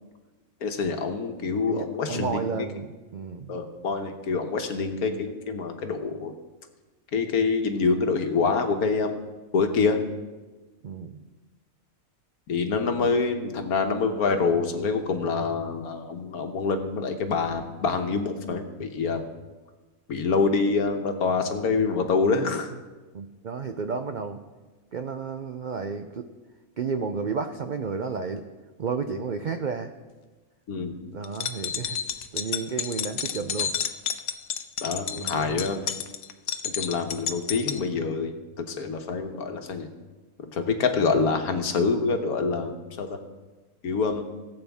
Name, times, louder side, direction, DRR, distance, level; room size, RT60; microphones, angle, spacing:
voice 1, 0.6-2.4 3.5-6.3 7.1-9.1 9.5-10.0 12.5-19.3 20.1-22.7 30.7-31.0 34.8-35.8 36.6-39.9 40.5-43.2 43.8-44.2, left 4 dB, 85° left, 6 dB, 1.5 m, -26 dB
voice 2, 1.7-3.6 10.8-11.2 12.9-13.1 23.1-24.4 24.9-26.3 26.8-28.4 28.8-29.9 31.1-32.0 32.3-33.7 35.1-35.7, right 5 dB, 75° right, 7 dB, 0.4 m, -32 dB
sound 1, 31.2-37.8, left 9 dB, 70° left, 1.0 m, -31 dB
18.0 x 8.0 x 3.5 m, 1.2 s
omnidirectional pair, 1.5 m